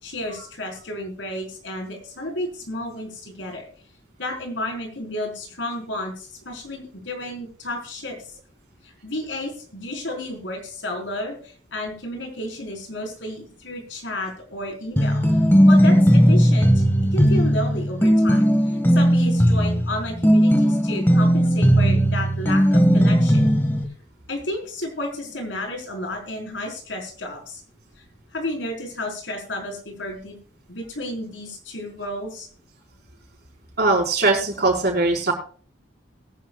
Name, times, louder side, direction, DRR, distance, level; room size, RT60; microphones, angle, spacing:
voice 1, 0.0-3.6 4.2-8.4 8.8-15.4 15.7-16.8 17.1-23.5 24.3-27.6 28.3-30.4 30.7-32.5, left 1 dB, 85° left, 1 dB, 4.8 m, -32 dB
sound 1, 15.0-23.8, equal, 15° left, 1.8 m, -17 dB
voice 2, 33.8-35.3, right 3 dB, 60° right, 0 dB, 5.2 m, -20 dB
21.5 x 10.5 x 2.4 m, 0.43 s
head